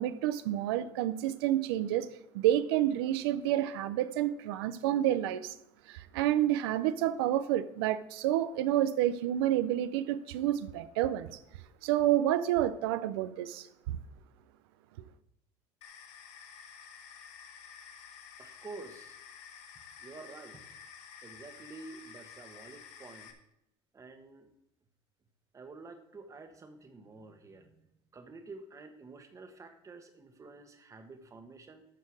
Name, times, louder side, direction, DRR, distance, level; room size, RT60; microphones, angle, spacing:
voice 1, 0.0-2.1 2.3-5.5 5.9-11.4 11.8-14.0, right 12 dB, 90° right, 0.5 m, -29 dB
sound 1, 15.8-23.3, left 7 dB, 65° left, 1.2 m, -51 dB
voice 2, 18.4-19.2 20.0-20.6 21.2-23.3 23.9-24.5 25.5-27.8 28.1-31.9, right 3 dB, 25° right, 1.3 m, -49 dB
13.5 x 4.5 x 4.8 m
supercardioid pair, 110°, 13 cm